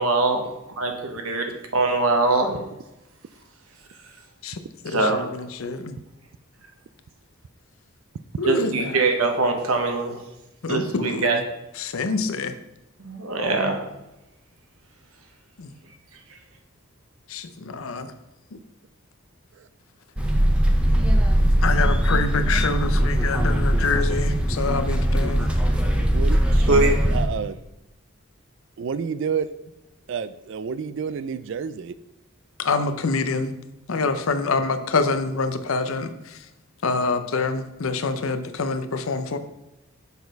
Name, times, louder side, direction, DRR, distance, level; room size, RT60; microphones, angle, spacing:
voice 1, 0.0-1.4 1.7-2.6 4.9-5.2 8.5-10.2 10.7-11.4 13.0-13.9 26.6-27.0, right 3 dB, 90° right, 4 dB, 1.2 m, -22 dB
voice 2, 4.4-6.0 8.4-9.0 10.6-11.4 11.8-12.5 15.6-15.7 17.3-18.1 21.6-25.5 32.6-33.5 33.9-36.4 36.8-39.4, left 4 dB, 80° left, 10 dB, 0.6 m, -26 dB
sound 1, 20.2-27.3, equal, 5° right, 0.6 m, -20 dB
voice 3, 26.1-26.5 27.1-27.6 28.8-29.5 30.1-32.0, right 6 dB, 60° right, 14 dB, 0.3 m, -29 dB
7.1 x 4.0 x 5.2 m, 0.92 s
head